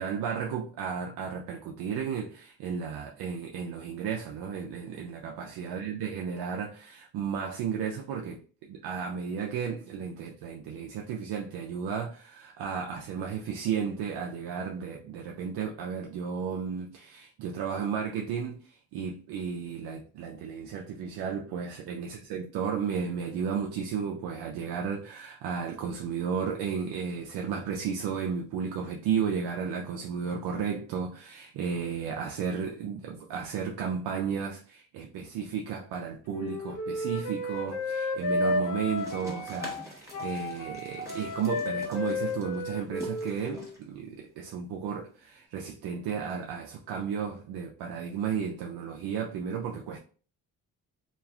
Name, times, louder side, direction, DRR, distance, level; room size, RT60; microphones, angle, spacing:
voice 1, 0.0-50.0, right 6 dB, 80° right, 0.5 m, -33 dB
Wind instrument woodwind instrument, 36.3-43.7, left 2 dB, 55° left, 0.8 m, -32 dB
sound 1, 39.0-45.4, right 1 dB, 10° right, 1.1 m, -47 dB
3.1 x 2.4 x 2.3 m
cardioid pair, 85°, 37 cm